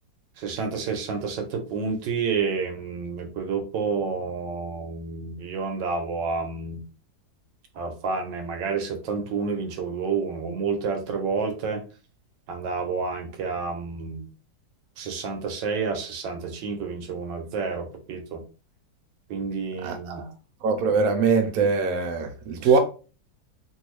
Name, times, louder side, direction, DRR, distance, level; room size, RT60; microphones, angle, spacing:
voice 1, 0.4-6.9 7.7-11.8 12.5-14.3 15.0-18.4 19.3-20.3 22.6-22.8, right 5 dB, 85° right, 1.4 m, -29 dB
voice 2, 20.6-22.8, right 4 dB, 70° right, 1.0 m, -22 dB
3.0 x 2.6 x 3.0 m
omnidirectional pair, 1.9 m